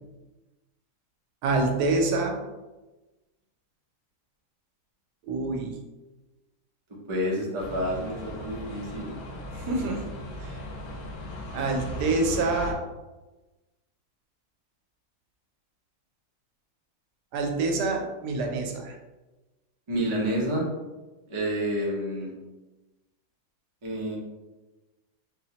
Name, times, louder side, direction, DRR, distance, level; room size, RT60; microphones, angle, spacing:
voice 1, 1.4-2.4 5.3-5.7 9.5-10.0 10.4-10.6 11.5-12.8 17.3-19.0, right 3 dB, 85° right, 2 dB, 1.2 m, -26 dB
voice 2, 7.1-9.2 19.9-20.6 21.3-22.3 23.8-24.2, equal, 40° right, -3 dB, 0.4 m, -29 dB
sound 1, 7.6-12.7, left 1 dB, 70° left, 1.1 m, -37 dB
4.1 x 2.0 x 2.8 m, 1.1 s
omnidirectional pair, 1.7 m